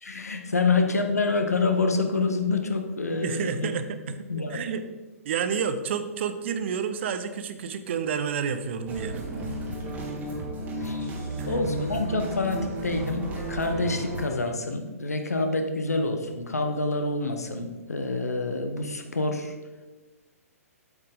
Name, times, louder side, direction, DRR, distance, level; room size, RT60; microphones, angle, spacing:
voice 1, 0.0-3.7 4.3-4.6 10.8-11.1 11.5-19.5, left 3 dB, 80° left, 6 dB, 1.0 m, -27 dB
voice 2, 3.2-4.2 4.5-4.8 5.2-9.3 11.4-11.5, right 7 dB, 50° right, 10 dB, 0.7 m, -30 dB
sound 1, 8.9-14.3, right 1 dB, 20° right, 1.4 m, -33 dB
7.9 x 5.7 x 3.8 m, 1.3 s
figure-of-eight pair, 125°, 8 cm